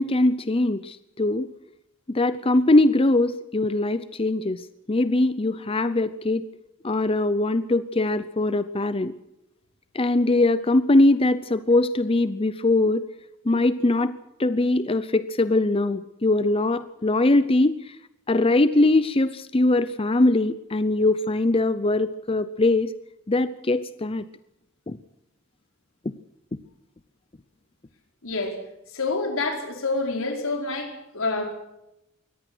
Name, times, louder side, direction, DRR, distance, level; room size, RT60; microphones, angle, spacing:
voice 1, 0.0-1.5 2.1-6.4 6.8-9.1 9.9-13.0 13.5-18.0 18.3-22.9 23.3-24.2 24.9-25.0 26.1-26.2, left 2 dB, 25° left, 14 dB, 0.6 m, -22 dB
voice 2, 28.2-28.6 28.9-31.5, left 3 dB, 80° left, 4 dB, 4.6 m, -27 dB
23.0 x 18.0 x 6.2 m, 0.88 s
head